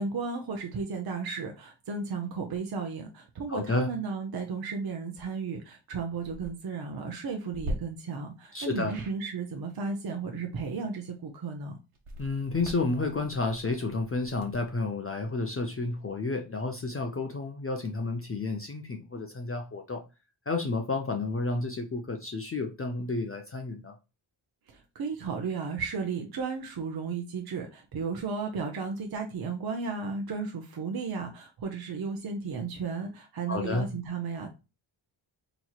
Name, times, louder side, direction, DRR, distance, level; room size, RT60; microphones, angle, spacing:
voice 1, 0.0-11.8 24.7-34.5, right 5 dB, 50° right, 0.7 m, -34 dB
voice 2, 3.5-3.9 8.5-8.9 12.2-20.0 20.5-23.9 33.5-33.9, left 3 dB, 30° left, 0.4 m, -31 dB
sound 1, 6.1-6.5 7.5-7.7 8.9-9.2 11.9-14.7, equal, 90° right, 1.1 m, -41 dB
4.2 x 2.9 x 2.3 m
wide cardioid pair, 175°, 49 cm